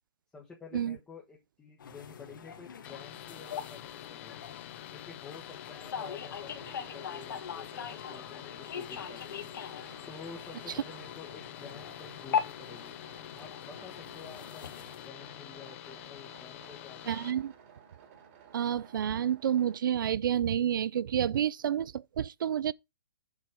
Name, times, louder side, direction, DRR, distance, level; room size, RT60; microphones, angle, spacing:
voice 1, 0.3-4.5 4.9-9.5 10.1-12.9 13.3-17.5, left 5 dB, 10° left, 1.3 m, -50 dB
sound 1, 1.8-15.1, left 7 dB, 60° left, 1.6 m, -41 dB
sound 2, 2.8-17.3, left 14 dB, 35° left, 0.6 m, -47 dB
sound 3, 6.0-19.8, right 7 dB, 40° right, 2.1 m, -56 dB
voice 2, 17.1-17.5 18.5-22.7, right 9 dB, 65° right, 0.4 m, -29 dB
7.3 x 6.0 x 5.0 m
hypercardioid pair, 150°, 12 cm